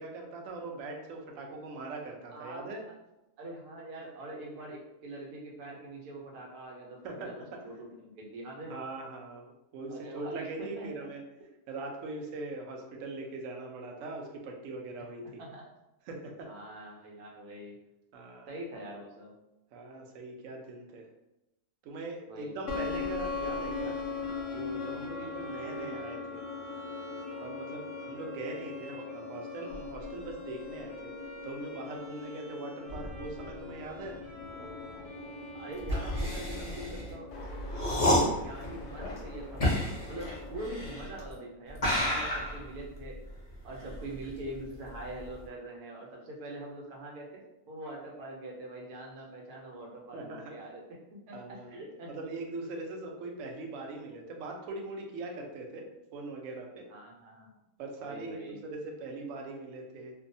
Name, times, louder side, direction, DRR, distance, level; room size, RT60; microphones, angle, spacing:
voice 1, 0.0-2.8 7.0-7.4 8.7-11.2 11.7-15.4 16.1-16.5 18.1-18.5 19.7-21.1 21.8-24.0 24.5-26.4 27.4-31.1 31.4-34.2 50.1-50.4 51.3-51.8 52.1-56.9 57.8-60.1, right 2 dB, 70° right, 1 dB, 0.8 m, -41 dB
voice 2, 2.3-2.9 3.4-8.8 9.9-10.9 15.4-15.7 16.4-17.8 18.5-19.3 22.3-22.9 35.5-37.3 38.0-43.2 43.6-47.4 47.7-50.8 51.3-52.1 56.9-57.5 58.0-58.6, right 1 dB, 90° right, -1 dB, 1.2 m, -44 dB
sound 1, 22.7-41.0, left 5 dB, 65° left, 0.8 m, -41 dB
Bowed string instrument, 23.2-37.1, right 2 dB, 40° right, 0.4 m, -48 dB
sound 2, 35.8-41.3 41.7-44.6 44.9-45.4, left 1 dB, 50° left, 0.4 m, -31 dB
2.6 x 2.2 x 2.5 m, 0.92 s
omnidirectional pair, 1.6 m